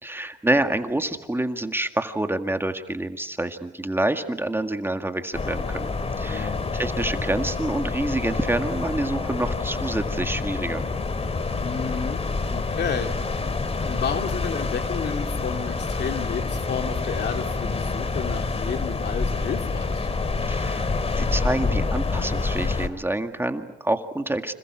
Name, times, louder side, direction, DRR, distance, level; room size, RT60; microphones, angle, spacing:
voice 1, 0.0-5.9 6.2-10.8 20.5-20.9 21.1-24.5, right 1 dB, 10° right, 7 dB, 1.9 m, -27 dB
sound 1, 5.3-22.9, left 3 dB, 30° left, 2.5 m, -27 dB
voice 2, 6.3-6.6 11.6-12.2 12.5-13.1 13.8-20.1, left 6 dB, 60° left, 6 dB, 2.6 m, -31 dB
30.0 x 27.0 x 6.2 m, 0.99 s
cardioid pair, 90°, 20 cm